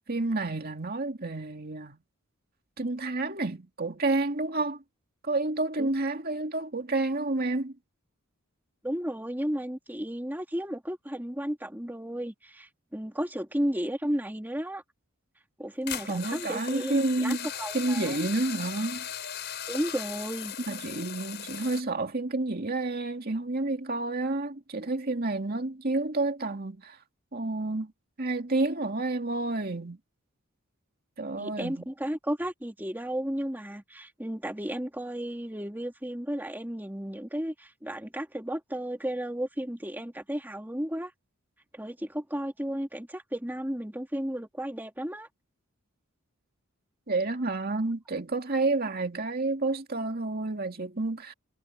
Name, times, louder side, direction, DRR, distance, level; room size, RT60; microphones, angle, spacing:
voice 1, 0.1-2.0 2.8-4.8 5.2-7.7 16.1-17.5 17.7-19.1 20.7-27.0 27.3-27.9 28.2-30.0 31.2-31.8 47.1-51.3, right 2 dB, 45° right, 2.3 m, -29 dB
voice 2, 8.8-14.8 15.6-18.2 19.7-20.5 31.4-41.1 41.7-45.3, equal, 10° right, 2.4 m, -33 dB
sound 1, 15.9-21.8, left 9 dB, 50° left, 7.3 m, -38 dB
head